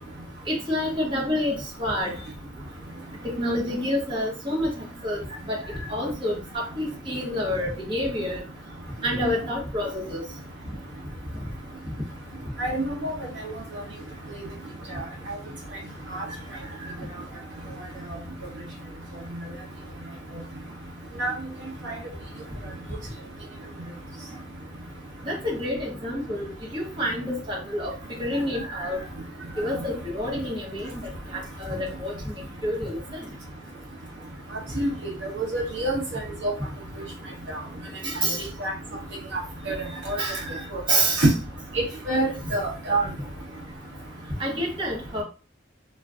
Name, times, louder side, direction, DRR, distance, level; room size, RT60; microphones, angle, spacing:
voice 1, 0.5-2.2 3.2-4.7 5.0-5.2 5.5-5.6 5.9-8.4 9.0-10.2 25.2-26.5 26.7-27.9 28.2-29.0 29.6-30.9 31.3-32.1 32.6-33.3 38.0-38.4 40.2-40.4 40.9-41.2 44.4-45.2, equal, 25° right, -4 dB, 0.9 m, -28 dB
voice 2, 12.6-13.1 16.1-16.2 21.2-21.3 21.8-22.0 34.8-34.9 35.3-36.5 38.6-38.7 39.3-39.4 39.7-39.8 40.1-40.2 40.7-40.8 41.2-41.3 42.1-43.1, right 2 dB, 65° right, -1 dB, 0.8 m, -25 dB
2.4 x 2.2 x 3.5 m, 0.35 s
head